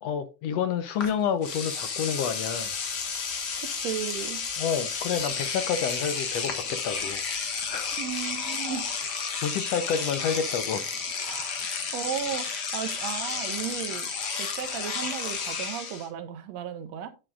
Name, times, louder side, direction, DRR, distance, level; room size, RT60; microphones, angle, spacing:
voice 1, 0.0-2.7 4.6-7.2 7.5-8.0 9.4-10.8, left 7 dB, 70° left, 1.7 m, -29 dB
Engine / Domestic sounds home sounds, 1.0-1.1 1.4-16.1, left 5 dB, 45° left, 1.5 m, -32 dB
sound 1, 2.5-8.4, left 3 dB, 85° left, 4.6 m, -54 dB
voice 2, 3.6-4.4 8.0-8.9 11.2-11.5 11.9-14.1 14.4-17.1, right 9 dB, 70° right, 2.1 m, -35 dB
10.5 x 7.8 x 2.4 m
omnidirectional pair, 3.4 m